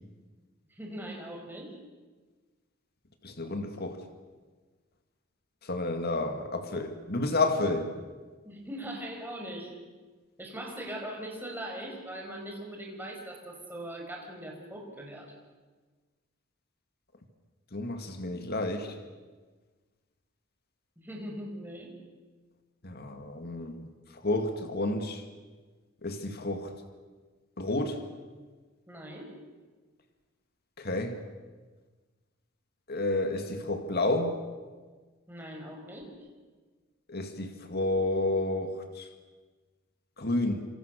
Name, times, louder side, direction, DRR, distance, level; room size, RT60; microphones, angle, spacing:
voice 1, 0.7-1.7 8.4-9.7 10.4-15.3 21.0-21.9 28.9-29.3 35.3-36.3, right 1 dB, 10° right, 0 dB, 5.4 m, -40 dB
voice 2, 3.2-4.0 5.6-7.9 17.7-19.0 22.8-23.9 24.2-25.2 26.0-26.7 27.6-28.0 30.8-31.2 32.9-34.4 37.1-39.1 40.2-40.6, left 2 dB, 50° left, 6 dB, 2.2 m, -30 dB
27.0 x 26.5 x 6.6 m, 1.3 s
head